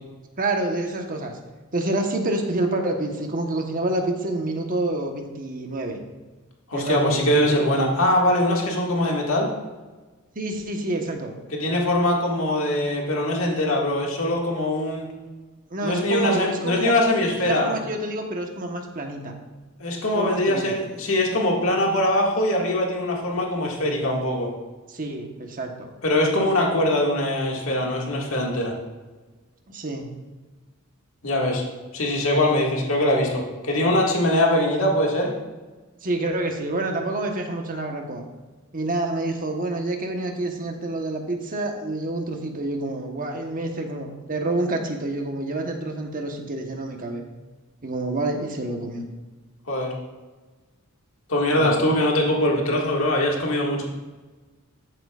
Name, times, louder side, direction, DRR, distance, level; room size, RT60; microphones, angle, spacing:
voice 1, 0.4-1.3 1.7-6.0 6.7-7.8 10.3-11.3 15.7-16.9 17.3-19.3 20.1-20.8 24.9-25.9 29.7-30.1 36.0-38.2 38.7-47.2 47.8-49.0 51.5-51.8, right 2 dB, 40° right, 3 dB, 1.2 m, -28 dB
voice 2, 6.7-9.5 11.5-15.1 15.8-17.7 19.8-24.5 26.0-28.7 31.2-31.6 31.9-35.3 49.7-49.9 51.3-53.9, left 1 dB, 70° left, -1 dB, 2.0 m, -22 dB
14.0 x 7.8 x 2.5 m, 1.3 s
head